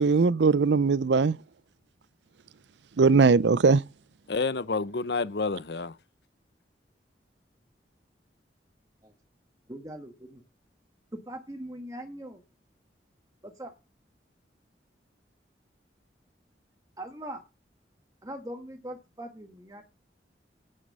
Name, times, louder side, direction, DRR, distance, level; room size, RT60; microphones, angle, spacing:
voice 1, 0.0-1.4 3.0-3.8, right 4 dB, 85° right, 0.5 m, -20 dB
voice 2, 4.3-6.0, left 4 dB, 70° left, 0.8 m, -29 dB
voice 3, 9.7-10.4 11.3-12.4 13.4-13.7 17.0-17.4 18.2-19.8, right 1 dB, 20° right, 1.5 m, -41 dB
10.0 x 9.3 x 5.5 m
head